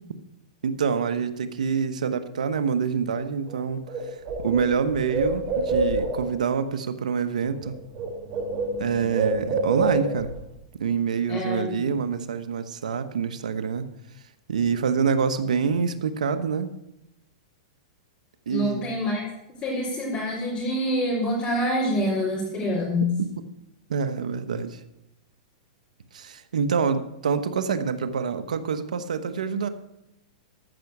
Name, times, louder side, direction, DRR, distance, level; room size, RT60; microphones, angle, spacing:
voice 1, 0.6-3.8 4.4-7.8 8.8-10.3 10.8-13.8 14.5-16.7 18.5-18.9 23.2-23.3 23.9-24.8 26.1-29.7, right 6 dB, 90° right, 10 dB, 1.1 m, -26 dB
Bird, 3.5-3.6 3.9-6.4 7.5-7.7 7.9-10.4, right 2 dB, 40° right, 4.2 m, -27 dB
voice 2, 11.3-11.8 18.5-19.3 19.6-23.1, left 1 dB, 30° left, -4 dB, 4.4 m, -26 dB
14.0 x 6.0 x 8.0 m, 0.84 s
hypercardioid pair, 140°, 4 cm